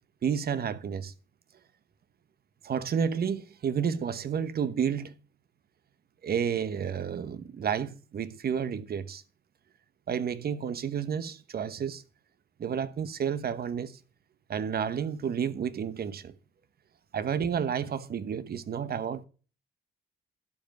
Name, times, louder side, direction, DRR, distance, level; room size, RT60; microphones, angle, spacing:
voice 1, 0.2-1.1 2.6-5.1 6.2-9.2 10.1-12.0 12.6-13.9 14.5-16.3 17.1-19.2, right 7 dB, 50° right, 1.1 m, -31 dB
12.0 x 5.3 x 7.9 m
cardioid pair, 90°, 20 cm